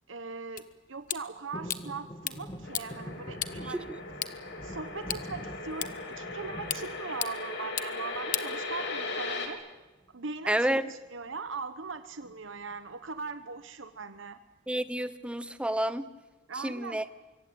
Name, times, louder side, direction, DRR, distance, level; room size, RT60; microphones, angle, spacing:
voice 1, 0.1-3.9 4.6-9.6 10.1-14.4 16.5-17.0, right 4 dB, 80° right, 10 dB, 1.1 m, -40 dB
sound 1, 0.6-9.2, left 11 dB, 45° left, 1.1 m, -40 dB
sound 2, 1.5-7.7 8.1-8.7 10.0-10.4 10.7-10.8 11.1-11.4 12.2-13.1 13.6-13.7, equal, 25° left, 2.7 m, -45 dB
sound 3, 2.6-9.5, left 3 dB, 60° left, 3.8 m, -38 dB
voice 2, 10.5-10.8 14.7-16.1 16.6-17.0, right 1 dB, 5° right, 13 dB, 1.0 m, -29 dB
24.5 x 24.0 x 8.7 m, 1.1 s
head